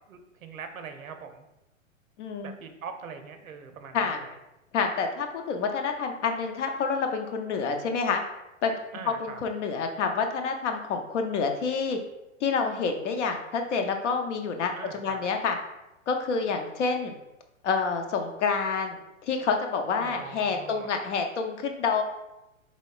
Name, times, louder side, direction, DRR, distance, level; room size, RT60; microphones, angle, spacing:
voice 1, 0.1-1.5 2.4-4.3 8.9-9.4 14.8-15.2 20.0-21.0, right 6 dB, 80° right, 7 dB, 0.6 m, -42 dB
voice 2, 2.2-2.5 3.9-4.2 4.7-8.2 8.6-8.7 9.1-12.0 12.4-15.6 16.1-17.1 17.6-22.0, left 5 dB, 60° left, 5 dB, 0.6 m, -28 dB
4.1 x 3.1 x 2.3 m, 0.95 s
hypercardioid pair, 115°, 40 cm